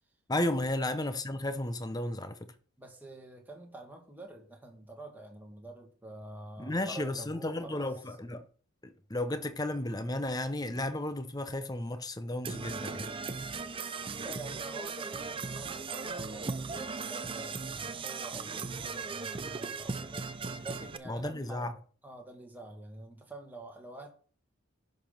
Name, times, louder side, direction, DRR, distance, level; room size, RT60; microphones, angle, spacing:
voice 1, 0.3-2.5 6.6-8.4 8.8-13.1 21.1-21.7, left 1 dB, 15° left, 0.7 m, -33 dB
voice 2, 2.8-7.9 13.8-21.7 22.0-24.1, right 2 dB, 10° right, 1.9 m, -47 dB
Percussion / Brass instrument, 12.4-21.0, right 4 dB, 25° right, 0.5 m, -38 dB
11.0 x 5.4 x 5.8 m
head